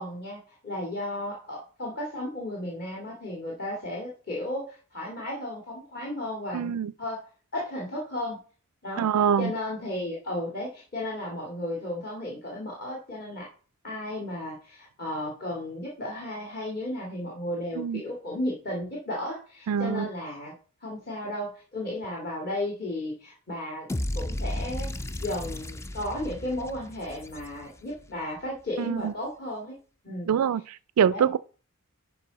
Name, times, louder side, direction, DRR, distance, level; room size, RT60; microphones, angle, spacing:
voice 1, 0.0-6.7 7.0-7.2 7.5-8.4 8.8-9.1 9.4-13.5 13.8-20.5 20.8-23.9 24.1-24.9 25.2-29.8 30.0-30.3 31.1-31.3, left 1 dB, 45° left, 2.2 m, -34 dB
voice 2, 6.5-6.9 9.0-9.5 17.8-18.0 19.7-20.1 28.8-29.1 30.3-31.4, right 8 dB, 85° right, 0.3 m, -25 dB
sound 1, 23.9-28.0, left 1 dB, 10° left, 0.3 m, -34 dB
11.5 x 5.1 x 4.0 m
head